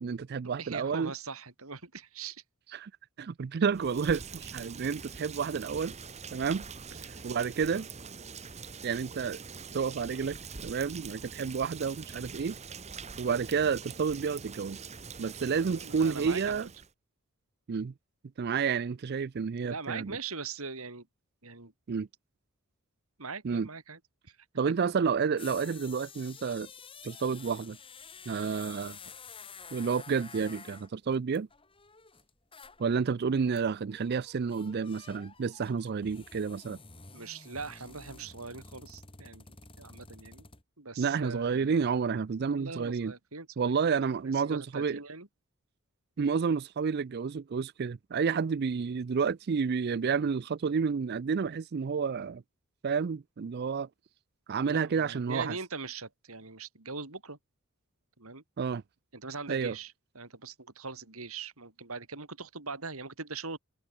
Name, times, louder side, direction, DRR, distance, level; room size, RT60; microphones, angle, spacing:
voice 1, 0.0-1.1 2.7-2.9 3.2-5.9 6.3-6.6 7.2-7.9 8.8-9.4 9.7-12.6 13.2-14.8 15.2-16.7 17.7-17.9 18.4-20.2 21.9-22.1 23.4-23.7 24.6-26.7 27.0-27.8 28.3-29.0 29.7-31.5 32.8-36.8 41.0-43.1 43.6-45.0 46.2-52.4 52.8-53.9 54.5-55.6 58.6-58.8 59.5-59.8, right 6 dB, 50° right, 0.4 m, -30 dB
voice 2, 0.6-2.4 7.0-7.2 7.6-7.8 15.7-16.6 19.6-21.1 21.4-21.7 23.2-24.4 37.1-39.4 39.8-40.5 40.8-41.7 42.4-44.0 44.4-45.3 54.7-57.4 58.2-58.4 59.1-63.6, right 4 dB, 75° right, 3.4 m, -41 dB
Rain, 3.7-16.9, right 5 dB, 30° right, 1.2 m, -44 dB
sound 1, 24.6-24.7 25.1-32.9 33.2-33.3 33.6-40.6, left 5 dB, 25° left, 5.7 m, -50 dB
open air
head